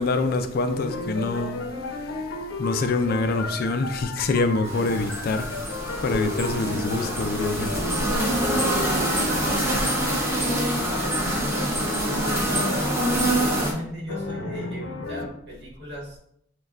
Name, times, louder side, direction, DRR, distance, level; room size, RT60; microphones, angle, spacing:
voice 1, 0.0-1.6 2.6-7.8, left 3 dB, 50° left, 0.3 m, -26 dB
sound 1, 0.7-10.4 12.8-13.1 14.1-15.3, left 2 dB, 90° left, 0.7 m, -33 dB
sound 2, 4.7-13.7, right 1 dB, 15° right, 0.7 m, -25 dB
voice 2, 10.8-12.9 13.3-16.2, left 1 dB, 60° right, 1.4 m, -36 dB
6.4 x 2.2 x 2.3 m
head